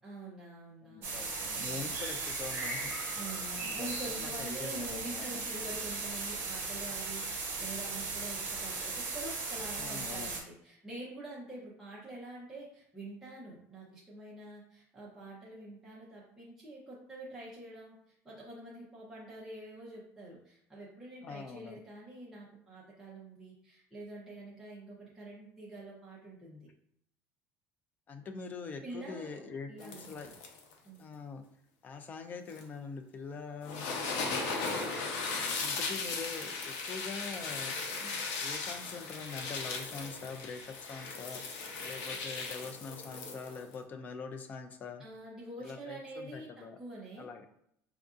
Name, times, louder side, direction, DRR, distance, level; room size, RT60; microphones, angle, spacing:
voice 1, 0.0-1.3 1.6-2.0 3.1-26.7 28.8-29.4 29.7-30.1 30.8-31.0 35.2-35.6 37.9-38.2 45.0-46.5 46.8-47.5, right 2 dB, 5° right, -7 dB, 0.7 m, -46 dB
voice 2, 0.8-2.9 3.6-5.4 9.8-10.3 21.2-21.8 28.1-30.3 31.0-31.4 31.8-34.4 35.6-37.8 38.4-45.0 45.6-46.8 47.2-47.5, left 5 dB, 25° left, 6 dB, 0.4 m, -44 dB
sound 1, 1.0-10.4, right 3 dB, 35° right, 1.1 m, -37 dB
sound 2, 29.8-30.7 32.5-32.6 33.6-43.7, left 4 dB, 85° left, 0.6 m, -37 dB
4.5 x 2.6 x 2.4 m, 0.73 s
cardioid pair, 155°, 6 cm